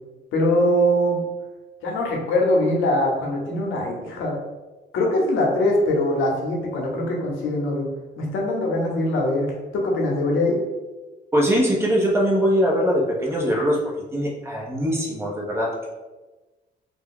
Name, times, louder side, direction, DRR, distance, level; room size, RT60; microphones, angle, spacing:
voice 1, 0.3-1.2 1.8-4.3 4.9-7.9 8.2-10.6, left 1 dB, 85° left, -1 dB, 0.8 m, -22 dB
voice 2, 11.3-13.8 14.1-15.9, equal, 10° right, -3 dB, 0.9 m, -21 dB
2.5 x 2.2 x 3.7 m, 1.2 s
cardioid pair, 90°, 20 cm